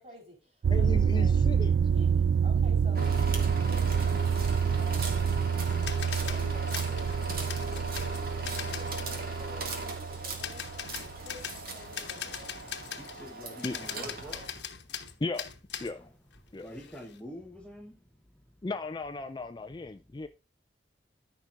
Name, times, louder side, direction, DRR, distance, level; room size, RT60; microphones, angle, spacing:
voice 1, 0.0-1.3 1.9-3.1 3.7-4.3 4.8-5.3 6.2-9.7 10.1-12.5 13.4-13.7, left 1 dB, 35° right, 4.1 m, -50 dB
sound 1, 0.6-11.4, right 7 dB, 65° right, 0.3 m, -27 dB
voice 2, 0.7-1.7 11.1-11.2 13.6-13.8 15.2-15.5 15.8-16.1 16.5-16.7 18.6-20.3, left 3 dB, 25° left, 0.4 m, -36 dB
sound 2, 2.9-14.6, right 2 dB, 50° right, 2.0 m, -38 dB
sound 3, 5.7-9.1 9.7-9.9 10.3-13.3 13.6-16.0 16.3-17.2, left 8 dB, 65° left, 1.1 m, -41 dB
voice 3, 12.9-14.5 15.9-16.0 16.5-18.0, equal, 5° left, 0.9 m, -45 dB
13.5 x 5.9 x 2.5 m
head